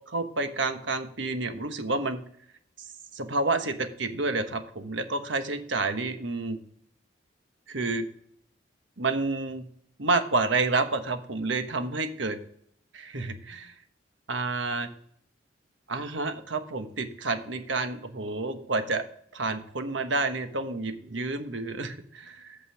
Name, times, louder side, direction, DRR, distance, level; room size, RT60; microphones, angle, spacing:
voice 1, 0.1-2.2 3.1-6.6 7.7-8.0 9.0-9.7 10.0-12.4 12.9-13.7 14.3-14.9 15.9-19.0 19.3-22.6, right 3 dB, 80° right, 7 dB, 1.2 m, -29 dB
8.5 x 5.4 x 6.3 m, 0.65 s
head